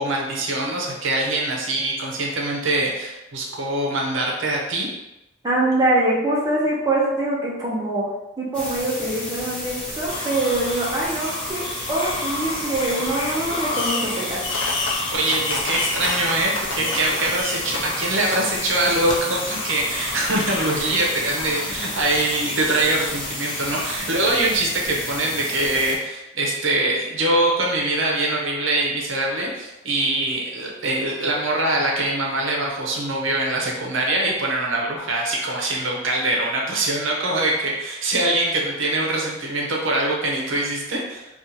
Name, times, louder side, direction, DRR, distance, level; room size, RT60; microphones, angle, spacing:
voice 1, 0.0-4.9 15.1-41.3, right 2 dB, 70° right, -2 dB, 0.7 m, -23 dB
voice 2, 5.4-8.1 8.4-14.4, right 2 dB, 20° right, -6 dB, 0.6 m, -24 dB
sound 1, 8.5-26.0, equal, 5° left, 0.9 m, -33 dB
sound 2, 10.1-24.0, left 2 dB, 25° left, 0.4 m, -32 dB
Fireworks, 13.7-14.2 14.4-17.1 17.3-17.8 18.3-18.4 19.1-19.2, left 3 dB, 65° left, 0.6 m, -28 dB
2.8 x 2.5 x 3.8 m, 0.98 s
head